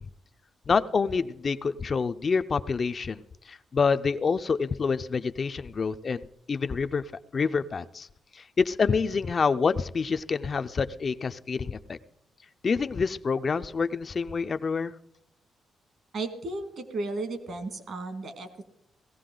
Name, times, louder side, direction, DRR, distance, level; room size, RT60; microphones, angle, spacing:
voice 1, 0.7-8.1 8.3-12.0 12.6-15.0, left 5 dB, 35° left, 10 dB, 0.4 m, -27 dB
voice 2, 16.1-18.6, right 2 dB, 55° right, 8 dB, 1.9 m, -34 dB
17.5 x 14.5 x 3.8 m, 0.76 s
cardioid pair, 135°, 0 cm